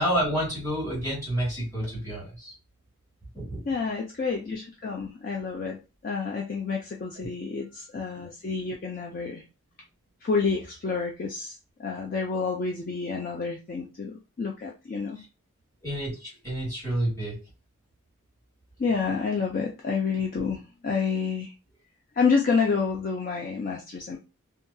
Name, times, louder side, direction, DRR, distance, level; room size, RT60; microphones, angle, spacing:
voice 1, 0.0-2.5 3.3-3.6 7.2-7.3 15.8-17.4, equal, 15° left, -6 dB, 1.7 m, -29 dB
voice 2, 3.7-9.4 10.2-15.2 18.8-21.5 22.1-24.2, left 5 dB, 40° left, 1 dB, 0.3 m, -29 dB
2.7 x 2.3 x 2.5 m, 0.28 s
head